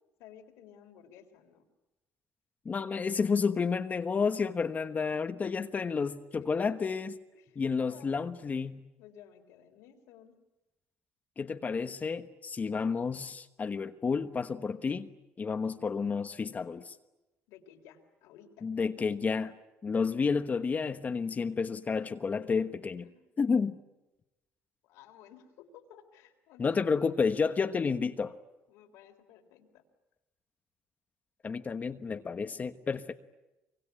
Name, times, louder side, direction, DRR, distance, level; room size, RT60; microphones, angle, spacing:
voice 1, 0.2-1.6 2.7-3.0 6.4-6.9 7.3-8.3 9.0-10.3 17.5-18.7 23.0-23.2 24.8-26.9 28.7-29.8, left 9 dB, 90° left, 3.8 m, -55 dB
voice 2, 2.6-7.1 7.5-8.8 11.4-15.1 15.4-17.0 18.6-19.5 19.8-23.1 23.4-23.8 26.6-28.3 31.4-33.1, left 5 dB, 35° left, 1.2 m, -30 dB
24.5 x 24.5 x 9.7 m
cardioid pair, 90°, 5 cm